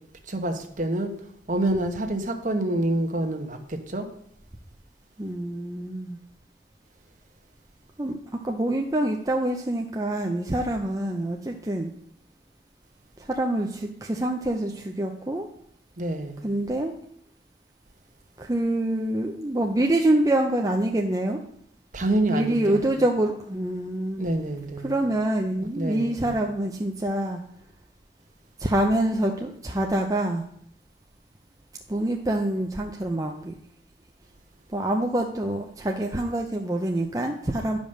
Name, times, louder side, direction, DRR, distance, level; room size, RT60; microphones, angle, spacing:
voice 1, 0.3-1.1 1.5-4.1 16.0-16.4 21.9-22.8 24.2-24.9 25.8-26.3, right 1 dB, 45° right, 5 dB, 1.2 m, -27 dB
voice 2, 5.2-6.2 8.0-8.2 8.4-11.9 13.2-15.5 16.4-16.9 18.4-21.4 22.3-24.3 24.8-27.4 28.6-30.4 31.9-33.5 34.7-37.8, right 1 dB, 20° right, 2 dB, 0.6 m, -26 dB
10.5 x 5.2 x 6.5 m, 0.68 s
head